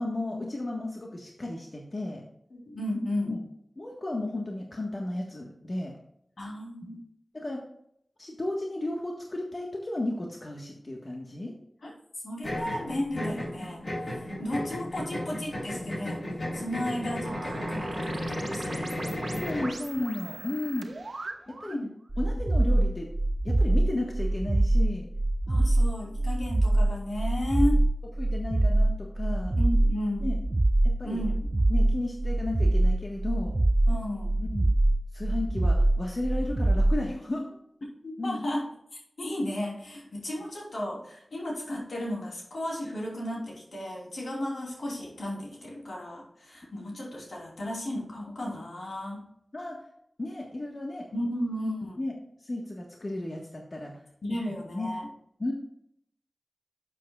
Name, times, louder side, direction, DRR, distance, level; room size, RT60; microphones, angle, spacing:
voice 1, 0.0-2.2 3.3-3.4 3.7-5.9 7.3-7.6 8.2-11.5 19.3-20.9 21.5-21.8 22.2-23.1 23.4-25.1 25.6-25.7 28.2-29.6 30.2-30.4 30.8-31.3 31.7-33.5 34.4-34.7 35.1-37.5 38.2-38.4 49.5-49.8 50.2-51.1 52.0-52.1 52.4-53.9 54.7-54.9 55.4-55.5, left 2 dB, 50° left, -1 dB, 1.4 m, -33 dB
voice 2, 2.5-3.3 6.4-7.0 11.8-11.9 12.2-13.8 14.4-16.2 16.5-18.9 21.7-21.9 25.5-27.8 29.6-30.4 31.0-31.7 33.9-34.4 38.0-38.7 39.2-49.2 51.1-52.0 54.2-55.0, left 1 dB, 85° left, -3 dB, 3.2 m, -34 dB
sound 1, 12.4-19.8, left 1 dB, 65° left, 3.9 m, -34 dB
sound 2, 17.2-21.8, right 2 dB, 75° right, 1.2 m, -40 dB
sound 3, 22.1-37.1, right 1 dB, 35° right, 0.3 m, -24 dB
12.0 x 7.6 x 2.4 m, 0.73 s
cardioid pair, 45°, 0 cm